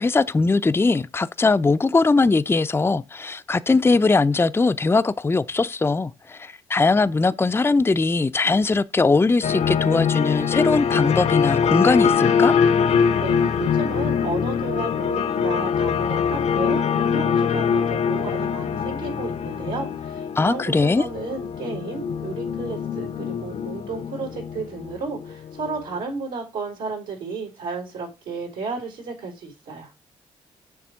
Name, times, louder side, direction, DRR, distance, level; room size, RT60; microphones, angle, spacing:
voice 1, 0.0-12.5 20.4-21.1, left 3 dB, 20° left, 0.5 m, -20 dB
sound 1, 9.4-25.8, left 7 dB, 60° left, 0.7 m, -23 dB
voice 2, 13.2-29.9, right 4 dB, 85° right, 3.8 m, -33 dB
7.1 x 3.4 x 6.2 m
hypercardioid pair, 50°, 13 cm